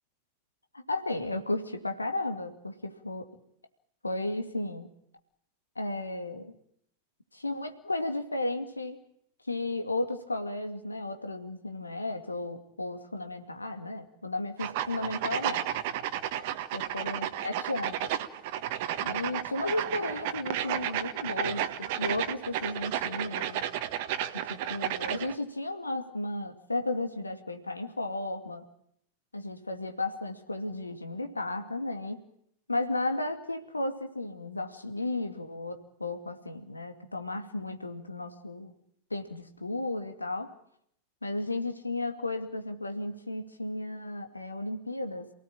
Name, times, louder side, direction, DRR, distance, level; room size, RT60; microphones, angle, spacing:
voice 1, 0.7-3.4 4.0-4.9 5.8-6.5 7.3-9.0 9.5-15.7 16.7-18.1 19.0-23.6 24.3-28.7 29.3-32.2 32.7-38.7 39.1-40.5 41.2-45.3, left 2 dB, 80° left, 7 dB, 2.4 m, -34 dB
sound 1, 14.6-25.4, right 11 dB, 50° right, 1.5 m, -32 dB
28.5 x 17.5 x 8.9 m, 0.70 s
figure-of-eight pair, 90°, 0 cm